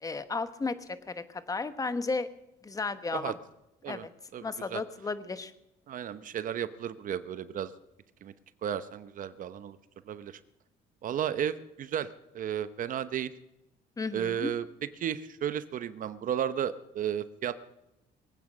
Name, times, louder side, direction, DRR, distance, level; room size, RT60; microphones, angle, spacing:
voice 1, 0.0-2.3 2.6-3.3 3.9-4.1 4.4-5.5 14.0-14.5, left 3 dB, 20° left, 12 dB, 1.1 m, -34 dB
voice 2, 4.3-4.8 5.9-7.7 8.2-8.3 8.6-9.8 10.1-10.4 11.0-12.1 12.3-13.3 14.1-14.6 15.0-17.6, right 9 dB, 50° right, 13 dB, 0.8 m, -33 dB
22.5 x 8.6 x 6.1 m, 0.89 s
cardioid pair, 110°, 17 cm